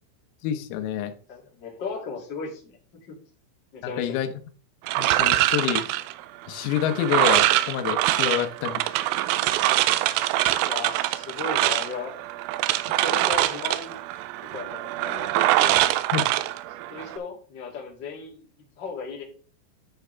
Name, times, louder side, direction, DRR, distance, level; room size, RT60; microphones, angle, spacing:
voice 1, 0.4-1.1 4.0-4.3 5.0-5.9 6.5-8.8 16.1-16.3, left 10 dB, 85° left, 7 dB, 3.7 m, -27 dB
voice 2, 1.3-2.8 3.1-3.2 3.7-4.1 8.2-8.5 10.6-12.1 12.9-14.0 14.4-15.8 16.9-18.5 18.8-19.2, left 5 dB, 35° left, -1 dB, 1.8 m, -36 dB
sound 1, 4.9-17.2, right 15 dB, 85° right, 3.1 m, -24 dB
13.0 x 5.0 x 3.3 m, 0.40 s
omnidirectional pair, 6.0 m